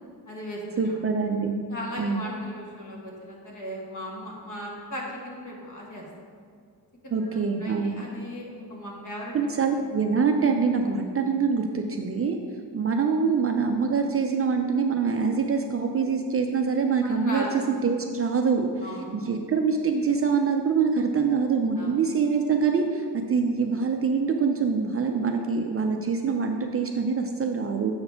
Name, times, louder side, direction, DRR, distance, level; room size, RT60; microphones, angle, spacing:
voice 1, 0.3-1.0 1.7-6.0 7.0-9.5 17.0-17.6 18.8-19.3 21.8-21.9, equal, 50° left, -2 dB, 1.6 m, -37 dB
voice 2, 0.8-1.6 2.0-2.2 7.1-7.9 9.3-12.4 12.7-18.8 19.1-27.9, right 5 dB, 40° right, 4 dB, 0.4 m, -25 dB
7.7 x 4.1 x 5.7 m, 2.1 s
wide cardioid pair, 175°, 39 cm